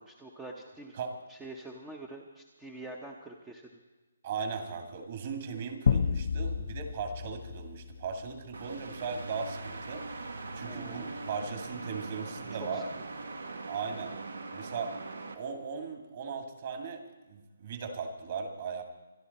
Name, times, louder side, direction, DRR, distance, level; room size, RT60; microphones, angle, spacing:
voice 1, 0.0-1.0 1.3-3.7 10.6-11.2 12.6-13.0, right 2 dB, 5° right, 1 dB, 0.8 m, -46 dB
voice 2, 4.2-12.9 13.7-14.1 14.5-15.0 15.4-18.8, right 5 dB, 35° right, 5 dB, 2.1 m, -38 dB
sound 1, 5.9-8.7, left 6 dB, 45° left, 0.5 m, -31 dB
sound 2, 8.5-15.3, right 3 dB, 85° right, 1.8 m, -41 dB
25.5 x 11.0 x 4.2 m, 1.2 s
hypercardioid pair, 170°, 0 cm